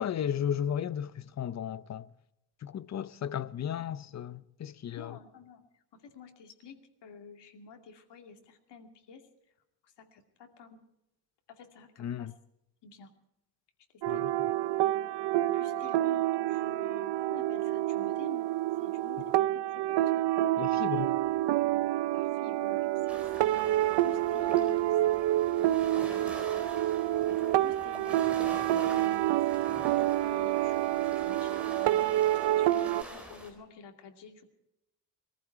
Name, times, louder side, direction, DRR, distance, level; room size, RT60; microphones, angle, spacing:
voice 1, 0.0-2.1 2.6-5.2 12.0-12.3 14.1-14.3 20.6-21.1, left 9 dB, 40° left, 0.6 m, -34 dB
voice 2, 4.9-9.5 9.8-10.8 11.5-12.3 12.8-13.1 14.1-14.2 15.5-18.5 18.8-19.4 19.7-20.8 22.1-23.5 24.0-25.2 25.7-26.7 27.3-28.2 28.9-29.8 30.2-34.5, left 5 dB, 80° left, 2.6 m, -50 dB
sound 1, 14.0-33.0, right 14 dB, 75° right, 0.6 m, -28 dB
sound 2, 23.1-33.5, right 1 dB, 5° right, 4.1 m, -46 dB
21.5 x 14.5 x 4.6 m
cardioid pair, 145°, 41 cm